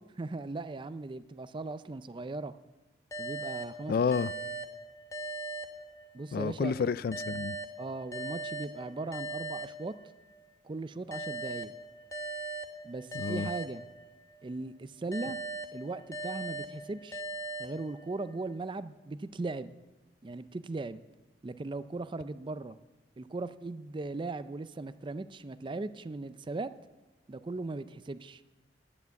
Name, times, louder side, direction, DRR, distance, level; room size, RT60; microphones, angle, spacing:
voice 1, 0.2-2.5 3.2-4.0 6.1-6.9 7.8-9.9 10.6-11.7 12.8-13.9 14.4-15.4 15.7-17.2 17.6-19.7 20.2-21.0 21.4-22.8 23.2-26.7 27.3-28.4, right 3 dB, 25° right, 13 dB, 0.4 m, -38 dB
sound 1, 3.1-6.4 7.1-10.4 11.1-14.4 15.1-18.4, right 2 dB, 20° left, 0.9 m, -40 dB
voice 2, 3.9-4.3 6.3-7.6 13.1-13.5, left 5 dB, 55° left, 19 dB, 0.3 m, -30 dB
10.5 x 9.3 x 7.0 m, 1.1 s
head